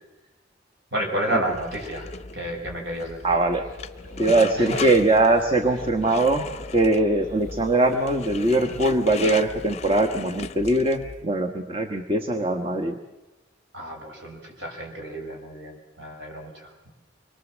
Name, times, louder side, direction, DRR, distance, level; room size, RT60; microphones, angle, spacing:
voice 1, 0.9-3.4 4.6-4.8 13.7-16.9, right 1 dB, 65° right, 2 dB, 5.8 m, -31 dB
sound 1, 1.5-11.2, left 4 dB, 35° left, 0.7 m, -36 dB
voice 2, 3.2-3.6 4.2-6.5 6.7-13.0, right 2 dB, 30° right, 4 dB, 1.2 m, -21 dB
sound 2, 3.4-9.1, left 2 dB, 45° right, 5.2 m, -45 dB
25.5 x 22.0 x 7.3 m, 1.1 s
head